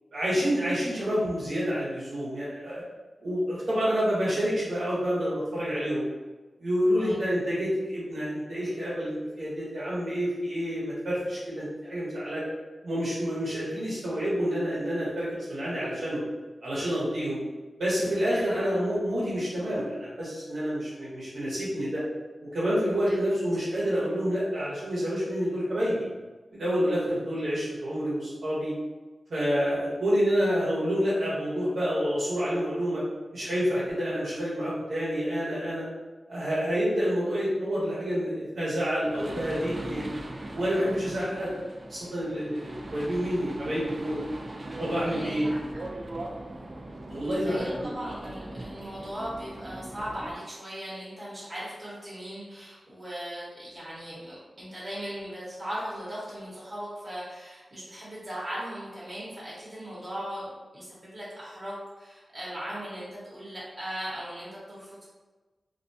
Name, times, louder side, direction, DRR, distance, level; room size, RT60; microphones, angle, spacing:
voice 1, 0.1-2.8 3.2-6.0 6.6-12.4 12.8-16.2 16.6-17.4 17.8-22.0 22.4-26.1 26.5-28.7 29.3-33.0 33.3-35.8 36.3-40.0 40.5-41.5 41.9-44.2 44.8-45.5 47.1-47.9, equal, 70° right, -9 dB, 1.0 m, -28 dB
sound 1, 39.0-50.3, right 1 dB, 45° right, 0.3 m, -40 dB
voice 2, 45.0-45.8 47.4-60.5 60.7-65.1, equal, 30° right, -9 dB, 1.1 m, -38 dB
2.5 x 2.2 x 2.6 m, 1.2 s
wide cardioid pair, 80°, 0 cm